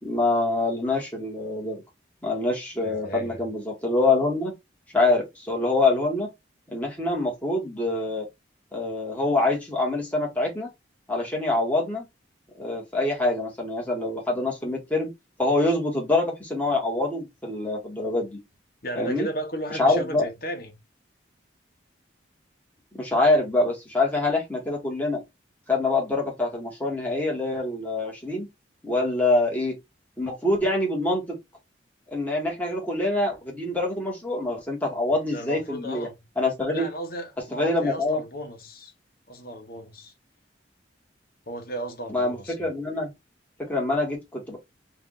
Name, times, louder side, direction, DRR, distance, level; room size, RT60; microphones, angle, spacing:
voice 1, 0.0-1.8 2.2-4.5 4.9-6.3 6.7-8.3 8.7-10.7 11.1-12.1 12.6-15.1 15.4-18.4 19.0-19.3 19.7-20.3 22.9-25.2 25.7-28.5 28.8-29.8 30.2-31.4 32.1-36.1 36.4-36.9 37.6-38.2 42.1-43.1 43.6-44.6, left 2 dB, 10° left, 1.4 m, -25 dB
voice 2, 2.8-3.4 18.8-20.7 35.3-36.2 36.7-38.9 39.3-40.1 41.5-42.7, right 1 dB, 50° left, 1.1 m, -35 dB
3.4 x 2.6 x 3.8 m
head